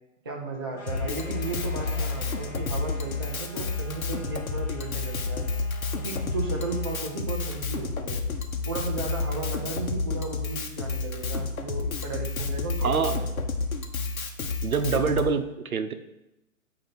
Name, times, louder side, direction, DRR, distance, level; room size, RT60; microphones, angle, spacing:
voice 1, 0.2-5.5 6.0-8.2 8.7-13.5, right 3 dB, 20° right, -1 dB, 0.4 m, -35 dB
sound 1, 0.7-7.2, left 1 dB, 5° left, 1.0 m, -48 dB
Drum kit, 0.9-15.3, left 3 dB, 85° left, 1.0 m, -30 dB
sound 2, 1.1-5.0, left 5 dB, 55° left, 1.1 m, -47 dB
voice 2, 12.8-13.2 14.6-15.9, right 5 dB, 85° right, 9 dB, 0.8 m, -25 dB
8.4 x 2.8 x 5.8 m, 0.91 s
hypercardioid pair, 145°, 41 cm